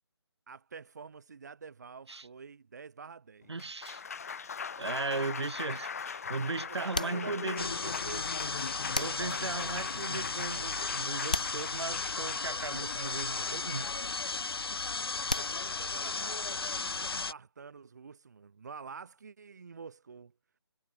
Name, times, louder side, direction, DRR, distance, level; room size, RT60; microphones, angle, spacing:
voice 1, 0.5-3.5 6.4-8.6 15.7-20.3, right 5 dB, 40° right, 4.7 m, -47 dB
Applause, 3.4-15.7, left 6 dB, 35° left, 3.7 m, -41 dB
voice 2, 3.5-4.0 4.3-7.7 9.0-14.1, right 3 dB, 70° right, 6.6 m, -37 dB
sound 1, 6.9-7.9 8.9-9.8 11.3-12.4 15.3-16.1, left 2 dB, 15° left, 0.4 m, -38 dB
sound 2, 7.6-17.3, left 4 dB, 60° left, 1.8 m, -35 dB
hypercardioid pair, 175°, 14 cm